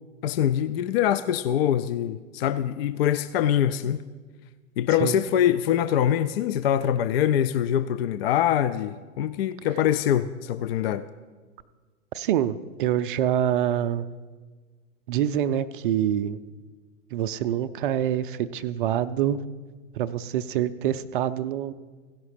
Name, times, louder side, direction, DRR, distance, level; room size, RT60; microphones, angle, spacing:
voice 1, 0.2-4.0 4.8-11.0, left 10 dB, 50° left, 13 dB, 0.4 m, -24 dB
voice 2, 12.1-14.1 15.1-16.4 17.1-19.4 19.9-21.7, right 10 dB, 45° right, 12 dB, 0.4 m, -26 dB
16.0 x 5.9 x 5.0 m, 1.4 s
figure-of-eight pair, 100°, 39 cm